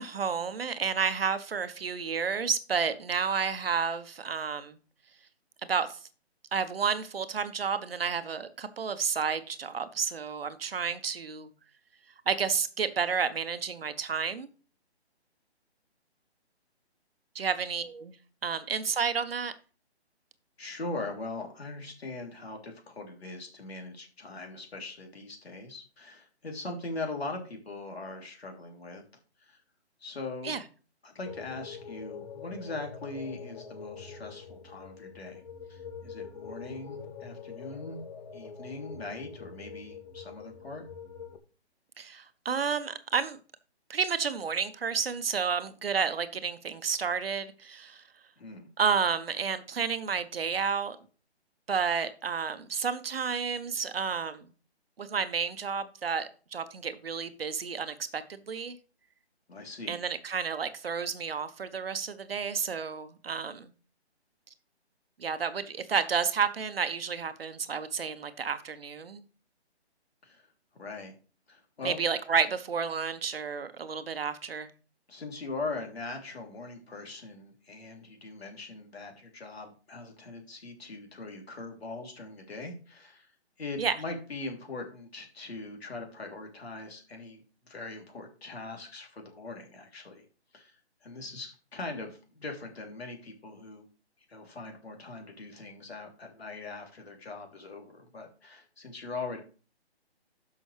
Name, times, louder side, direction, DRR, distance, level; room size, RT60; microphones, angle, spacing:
voice 1, 0.0-4.8 5.7-6.0 6.5-11.5 12.3-14.5 17.3-18.1 18.4-19.5 30.4-30.6 42.0-43.4 43.9-48.0 48.8-51.0 51.7-54.5 55.0-58.8 59.9-63.7 65.2-69.2 71.8-74.7 83.8-83.9, right 6 dB, 60° right, 1.1 m, -31 dB
voice 2, 20.6-29.0 29.4-29.6 30.0-30.5 31.0-35.4 35.7-38.0 38.3-40.8 48.4-48.7 59.5-60.0 70.2-71.1 71.5-72.0 75.1-83.3 83.6-90.2 90.5-93.9 94.3-99.4, left 3 dB, 65° left, 3.5 m, -41 dB
sound 1, 31.3-41.4, left 6 dB, 40° left, 1.5 m, -44 dB
12.5 x 6.1 x 3.4 m
figure-of-eight pair, 150°, 33 cm